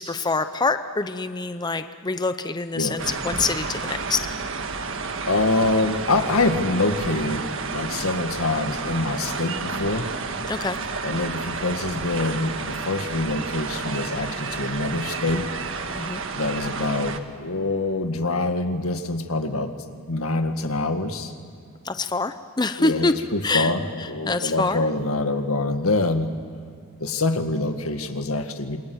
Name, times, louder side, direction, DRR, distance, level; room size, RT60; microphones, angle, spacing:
voice 1, 0.0-4.2 10.5-10.8 16.0-16.2 21.8-23.1 23.4-23.7 24.3-24.8, left 3 dB, 20° left, 10 dB, 0.6 m, -25 dB
sound 1, 3.0-17.2, right 4 dB, 65° right, 1.5 m, -31 dB
voice 2, 5.3-7.4 7.7-10.1 11.0-15.5 16.3-19.7 20.1-21.3 22.8-26.3 27.0-28.8, left 2 dB, 85° left, 7 dB, 1.9 m, -25 dB
28.0 x 22.5 x 7.9 m, 2.4 s
head